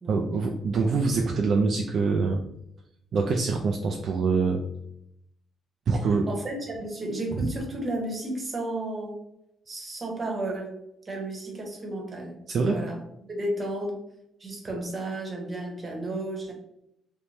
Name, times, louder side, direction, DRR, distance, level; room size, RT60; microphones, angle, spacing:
voice 1, 0.1-2.4 3.1-4.6 5.9-6.3 7.4-7.5 12.5-12.8, right 4 dB, 60° right, 1 dB, 0.3 m, -24 dB
voice 2, 6.3-9.2 9.7-10.8 11.0-12.4 12.7-13.0 13.3-14.0 14.4-16.5, right 1 dB, 35° right, 0 dB, 0.9 m, -33 dB
3.2 x 2.1 x 2.6 m, 0.79 s
cardioid pair, 90°, 0 cm